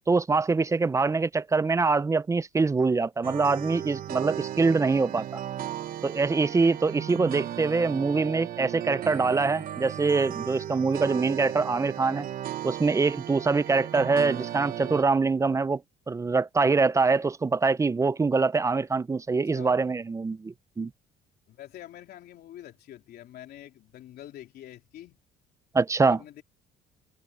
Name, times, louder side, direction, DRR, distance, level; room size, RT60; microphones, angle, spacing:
voice 1, 0.1-5.4 6.0-12.3 12.6-15.8 16.1-20.9 25.7-26.2, right 4 dB, 20° right, 0.5 m, -24 dB
sound 1, 3.2-15.0, right 11 dB, 60° right, 1.2 m, -36 dB
voice 2, 21.5-25.2 26.1-26.4, left 12 dB, 70° left, 3.8 m, -46 dB
open air
cardioid pair, 110°, 17 cm